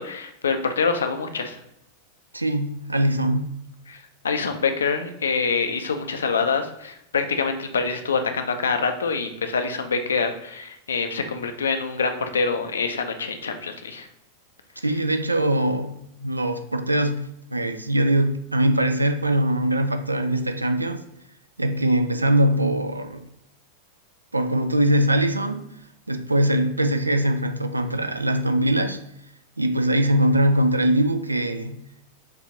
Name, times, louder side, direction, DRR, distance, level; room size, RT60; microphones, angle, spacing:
voice 1, 0.0-1.5 3.9-4.0 4.2-14.1, left 5 dB, 70° left, 0.5 m, -25 dB
voice 2, 2.3-3.6 14.8-21.0 21.6-23.2 24.3-25.6 26.1-29.0 29.6-31.8, right 1 dB, 80° right, 0.4 m, -22 dB
6.5 x 2.6 x 3.0 m
figure-of-eight pair, 90°, 0 cm